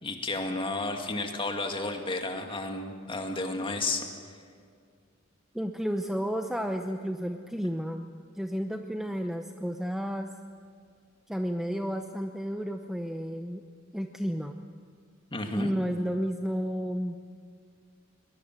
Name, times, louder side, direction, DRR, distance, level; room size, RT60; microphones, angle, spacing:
voice 1, 0.0-4.1 15.3-15.7, left 2 dB, 25° left, 4 dB, 2.3 m, -32 dB
voice 2, 5.5-8.1 8.4-10.3 11.3-13.6 13.9-14.6 15.5-17.2, equal, ahead, 5 dB, 0.8 m, -32 dB
23.0 x 19.5 x 7.6 m, 2.1 s
head